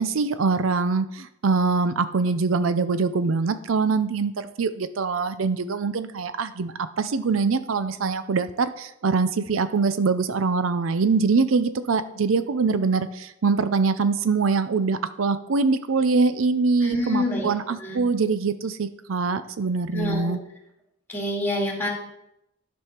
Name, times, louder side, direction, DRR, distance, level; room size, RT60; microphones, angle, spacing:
voice 1, 0.0-20.4, right 4 dB, 85° right, 12 dB, 0.5 m, -23 dB
voice 2, 16.8-17.5 17.8-18.0 19.9-20.4 21.1-21.9, left 1 dB, 10° left, -1 dB, 2.1 m, -27 dB
12.0 x 5.4 x 4.4 m, 0.82 s
head